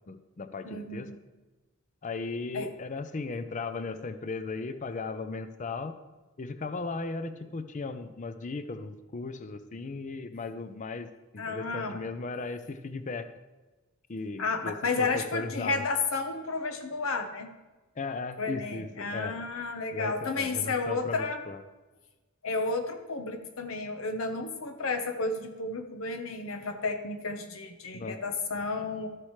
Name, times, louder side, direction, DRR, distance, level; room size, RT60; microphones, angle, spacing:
voice 1, 0.1-1.1 2.0-6.0 6.4-13.3 14.1-15.8 18.0-19.4 19.9-21.6 27.9-28.2, left 3 dB, 40° left, 10 dB, 0.5 m, -37 dB
voice 2, 0.6-1.2 2.5-2.7 11.4-12.0 14.4-17.5 18.4-21.4 22.4-29.1, left 3 dB, 85° left, 5 dB, 1.0 m, -32 dB
13.0 x 7.6 x 3.2 m, 1.2 s
head